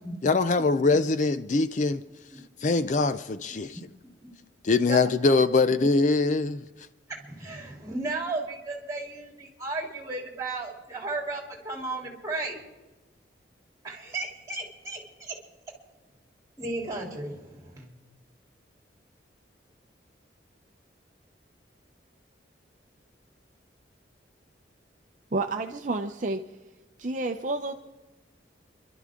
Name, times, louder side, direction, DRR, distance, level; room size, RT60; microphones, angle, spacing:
voice 1, 0.2-2.0 2.6-3.8 4.6-6.6, left 3 dB, 40° left, 12 dB, 0.4 m, -23 dB
voice 2, 7.2-12.6 13.8-15.3 16.6-17.9, right 2 dB, 20° right, 0 dB, 3.2 m, -34 dB
voice 3, 25.3-26.4 27.0-27.7, right 2 dB, 40° right, 5 dB, 0.6 m, -29 dB
29.5 x 12.0 x 3.7 m, 1.1 s
head